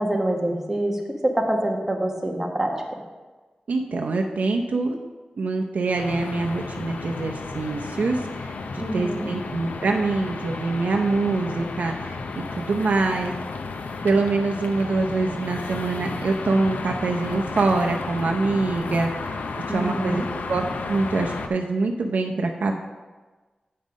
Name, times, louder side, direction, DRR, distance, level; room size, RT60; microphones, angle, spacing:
voice 1, 0.0-2.7 8.8-9.3 18.7-18.9 19.7-20.3, right 1 dB, 15° right, 0 dB, 1.3 m, -25 dB
voice 2, 3.7-5.0 5.4-8.5 8.9-12.2 12.6-13.3 14.0-19.3 19.7-20.2 20.5-22.8, right 3 dB, 75° right, 2 dB, 0.6 m, -24 dB
sound 1, 5.8-21.5, left 4 dB, 90° left, 0.6 m, -33 dB
8.6 x 5.5 x 5.2 m, 1.3 s
wide cardioid pair, 115°, 3 cm